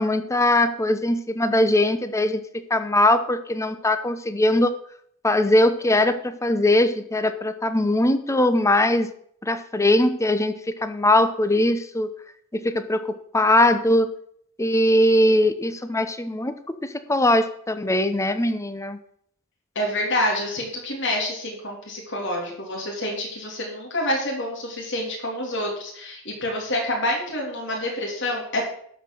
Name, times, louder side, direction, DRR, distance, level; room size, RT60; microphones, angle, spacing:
voice 1, 0.0-2.4 2.7-4.7 5.2-9.1 9.4-12.1 12.5-14.1 14.6-19.0, left 1 dB, 15° left, 10 dB, 0.8 m, -21 dB
voice 2, 19.7-28.6, left 1 dB, 60° left, -2 dB, 3.2 m, -27 dB
12.5 x 4.9 x 7.7 m, 0.65 s
head